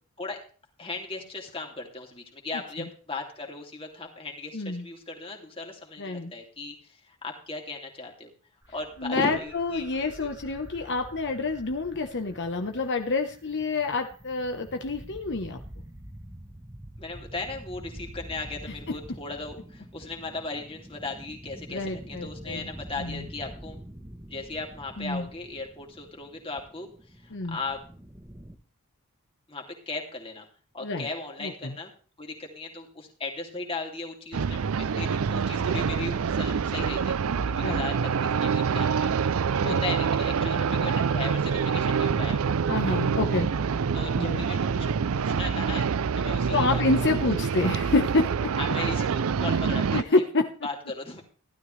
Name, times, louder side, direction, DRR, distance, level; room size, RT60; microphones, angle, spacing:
voice 1, 0.8-8.3 8.7-10.3 17.0-23.8 24.3-27.8 29.5-30.5 30.7-31.9 32.2-37.2 37.5-39.1 39.6-42.7 43.9-45.9 46.1-46.8 47.2-47.3 48.5-50.2 50.6-51.2, left 3 dB, 25° left, 1 dB, 2.9 m, -37 dB
voice 2, 4.5-4.8 6.0-6.3 9.0-15.6 18.9-19.0 21.7-22.7 23.0-23.2 25.0-25.3 27.3-27.6 30.8-31.1 31.4-31.7 37.6-37.8 39.6-39.8 42.7-43.5 44.1-44.4 46.5-48.6 49.9-50.5, left 3 dB, 55° left, 4 dB, 1.1 m, -28 dB
sound 1, 8.6-28.6, equal, 15° right, 1.2 m, -46 dB
sound 2, 34.3-50.0, right 6 dB, 65° right, 0.5 m, -26 dB
15.5 x 12.5 x 3.3 m, 0.40 s
head